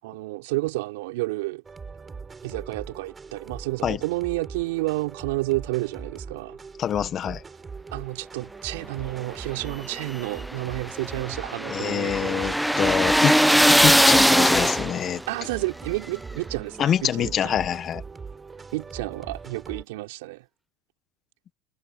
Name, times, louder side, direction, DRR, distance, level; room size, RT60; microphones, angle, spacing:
voice 1, 0.0-1.6 2.4-6.6 7.9-12.5 15.3-17.5 18.7-20.4, right 21 dB, 80° right, 3.7 m, -30 dB
sound 1, 1.6-19.8, right 4 dB, 20° right, 5.1 m, -41 dB
voice 2, 6.8-7.4 11.7-13.4 13.7-15.2 16.8-18.0, left 9 dB, 40° left, 1.3 m, -25 dB
sound 2, 9.7-15.2, equal, ahead, 0.5 m, -20 dB
supercardioid pair, 95°, 0 cm